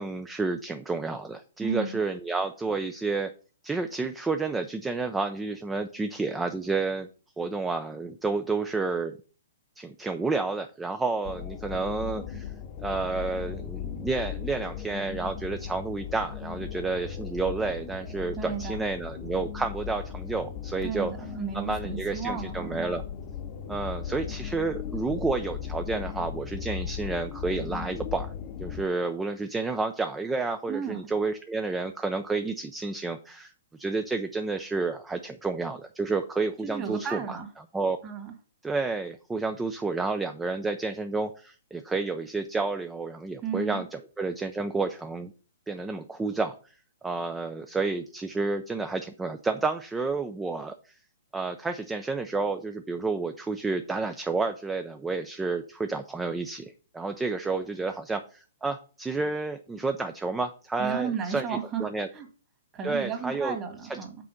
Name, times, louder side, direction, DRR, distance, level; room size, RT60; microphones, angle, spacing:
voice 1, 0.0-3.3 3.6-7.1 7.4-9.2 9.8-12.5 12.8-21.1 21.5-23.0 23.7-28.3 28.6-37.4 37.7-38.0 38.6-45.3 45.7-46.5 47.0-50.9 51.3-62.1 62.8-63.6 63.9-64.0, right 3 dB, 10° right, 7 dB, 0.5 m, -30 dB
voice 2, 1.6-2.0 18.4-18.8 20.8-22.8 30.7-31.0 36.6-37.5 38.0-38.3 43.4-43.8 60.8-61.8 62.1-62.3 62.7-64.2, right 6 dB, 25° right, 3 dB, 1.9 m, -33 dB
sound 1, 11.2-28.9, left 8 dB, 35° left, 0.9 m, -37 dB
6.1 x 4.3 x 6.4 m, 0.39 s
hypercardioid pair, 135°, 0 cm